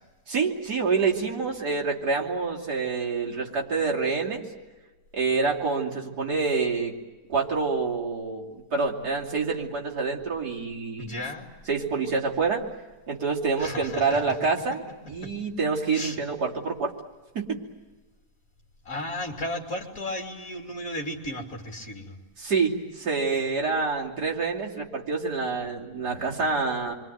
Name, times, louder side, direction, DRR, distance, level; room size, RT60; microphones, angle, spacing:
voice 1, 0.3-4.4 5.1-6.9 7.3-11.1 11.7-12.6 13.1-16.9 17.3-17.6 22.4-26.9, right 4 dB, 70° right, -3 dB, 3.3 m, -27 dB
voice 2, 11.0-11.5 13.6-14.4 15.2-15.3 15.9-16.2 18.9-22.2, left 1 dB, 55° left, 0 dB, 3.7 m, -34 dB
26.0 x 24.0 x 9.2 m, 1.3 s
omnidirectional pair, 1.8 m